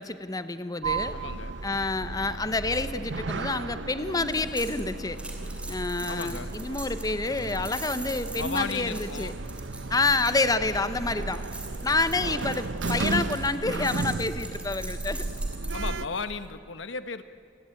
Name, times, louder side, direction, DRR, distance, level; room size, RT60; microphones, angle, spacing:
voice 1, 0.0-1.2 1.6-5.2 5.7-9.3 9.9-11.4 11.8-15.2, left 3 dB, 20° left, 12 dB, 0.8 m, -28 dB
Sliding door, 0.8-16.1, right 3 dB, 80° right, 0.9 m, -34 dB
voice 2, 1.1-1.5 6.1-6.5 8.3-9.3 15.7-17.2, left 4 dB, 85° left, 11 dB, 1.1 m, -35 dB
sound 1, 3.2-9.0 9.2-10.8, equal, 60° right, 3.5 m, -49 dB
sound 2, 4.3-15.9, right 2 dB, 5° right, 3.1 m, -43 dB
28.0 x 19.5 x 9.0 m, 2.4 s
head